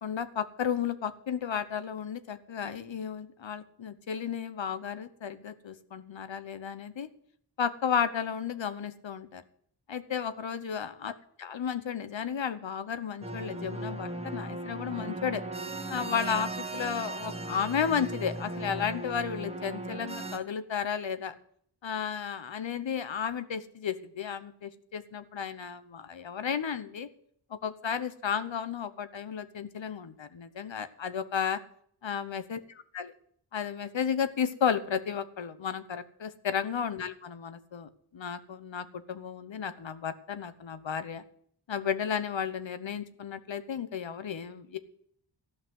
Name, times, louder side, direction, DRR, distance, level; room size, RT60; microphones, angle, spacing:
voice 1, 0.0-7.1 7.6-9.4 9.9-11.1 11.4-15.4 15.9-21.3 21.8-27.1 27.5-31.6 32.0-33.1 33.5-41.2 41.7-44.8, left 7 dB, 70° left, 12 dB, 1.0 m, -33 dB
sound 1, 13.2-20.4, right 2 dB, 15° right, 1.5 m, -37 dB
14.0 x 5.9 x 9.3 m, 0.66 s
wide cardioid pair, 65°, 46 cm